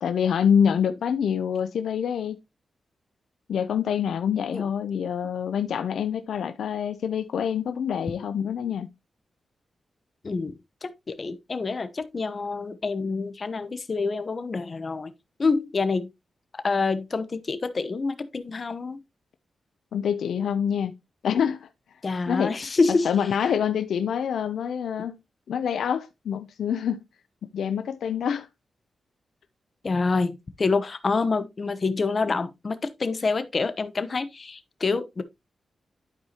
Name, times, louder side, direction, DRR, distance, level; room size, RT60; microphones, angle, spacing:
voice 1, 0.0-2.4 3.5-8.9 19.9-20.9 21.2-21.7 22.3-22.6 23.0-25.2 25.5-27.0 27.4-28.5, left 8 dB, 90° left, 0.6 m, -26 dB
voice 2, 10.8-15.1 15.4-16.1 16.6-19.0 22.0-23.1 29.8-35.2, left 4 dB, 45° left, 1.0 m, -27 dB
11.5 x 4.8 x 2.9 m
cardioid pair, 75°, 0 cm